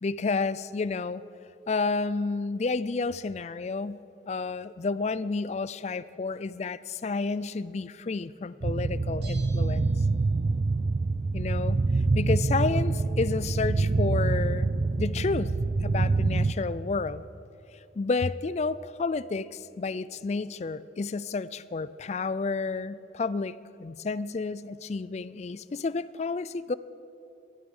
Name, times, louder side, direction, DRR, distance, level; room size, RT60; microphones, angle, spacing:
voice 1, 0.0-1.2 1.7-9.9 11.3-11.8 12.1-14.7 15.0-15.5 15.8-17.2 18.0-26.7, left 4 dB, 40° left, 17 dB, 0.4 m, -30 dB
sound 1, 8.6-16.5, right 3 dB, 40° right, 0.4 m, -26 dB
Bell, 9.2-10.6 10.9-11.0, right 4 dB, 60° right, 3.3 m, -52 dB
18.5 x 13.0 x 5.4 m, 2.8 s
head